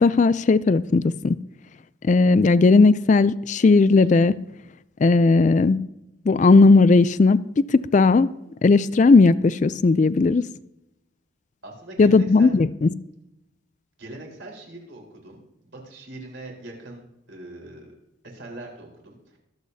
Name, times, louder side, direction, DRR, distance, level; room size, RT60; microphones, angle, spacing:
voice 1, 0.0-1.4 2.0-4.3 5.0-5.8 6.3-7.4 7.7-8.3 8.6-10.4 12.0-12.9, left 3 dB, 35° left, 16 dB, 0.3 m, -16 dB
voice 2, 11.6-12.5 14.0-17.0 17.3-17.9 18.2-19.4, right 1 dB, 65° right, 0 dB, 4.2 m, -41 dB
24.0 x 8.2 x 2.7 m, 0.87 s
head